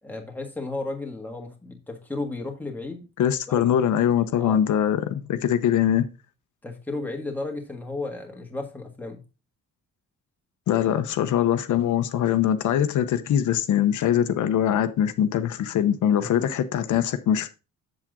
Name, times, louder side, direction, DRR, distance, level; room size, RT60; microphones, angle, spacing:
voice 1, 0.0-3.0 3.5-3.6 4.4-4.6 6.6-9.2 16.2-16.5, left 2 dB, 5° left, 1.7 m, -34 dB
voice 2, 3.2-6.0 10.7-17.5, left 10 dB, 65° left, 0.9 m, -22 dB
7.6 x 7.5 x 3.7 m
cardioid pair, 180°, 32 cm